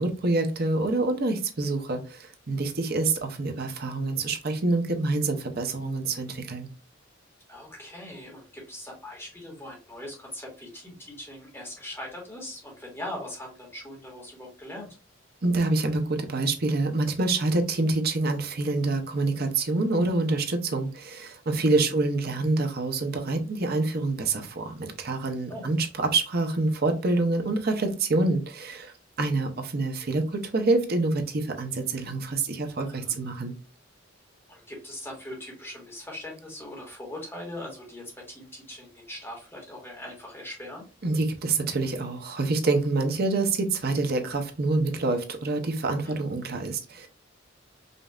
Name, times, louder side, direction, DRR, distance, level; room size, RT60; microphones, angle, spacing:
voice 1, 0.0-6.7 15.4-33.5 41.0-47.1, right 2 dB, 50° right, 5 dB, 0.8 m, -26 dB
voice 2, 7.5-15.0 21.8-22.0 25.5-25.6 32.9-33.2 34.5-40.8 46.0-46.2, left 1 dB, 10° left, -1 dB, 1.5 m, -41 dB
5.2 x 2.6 x 2.4 m, 0.34 s
head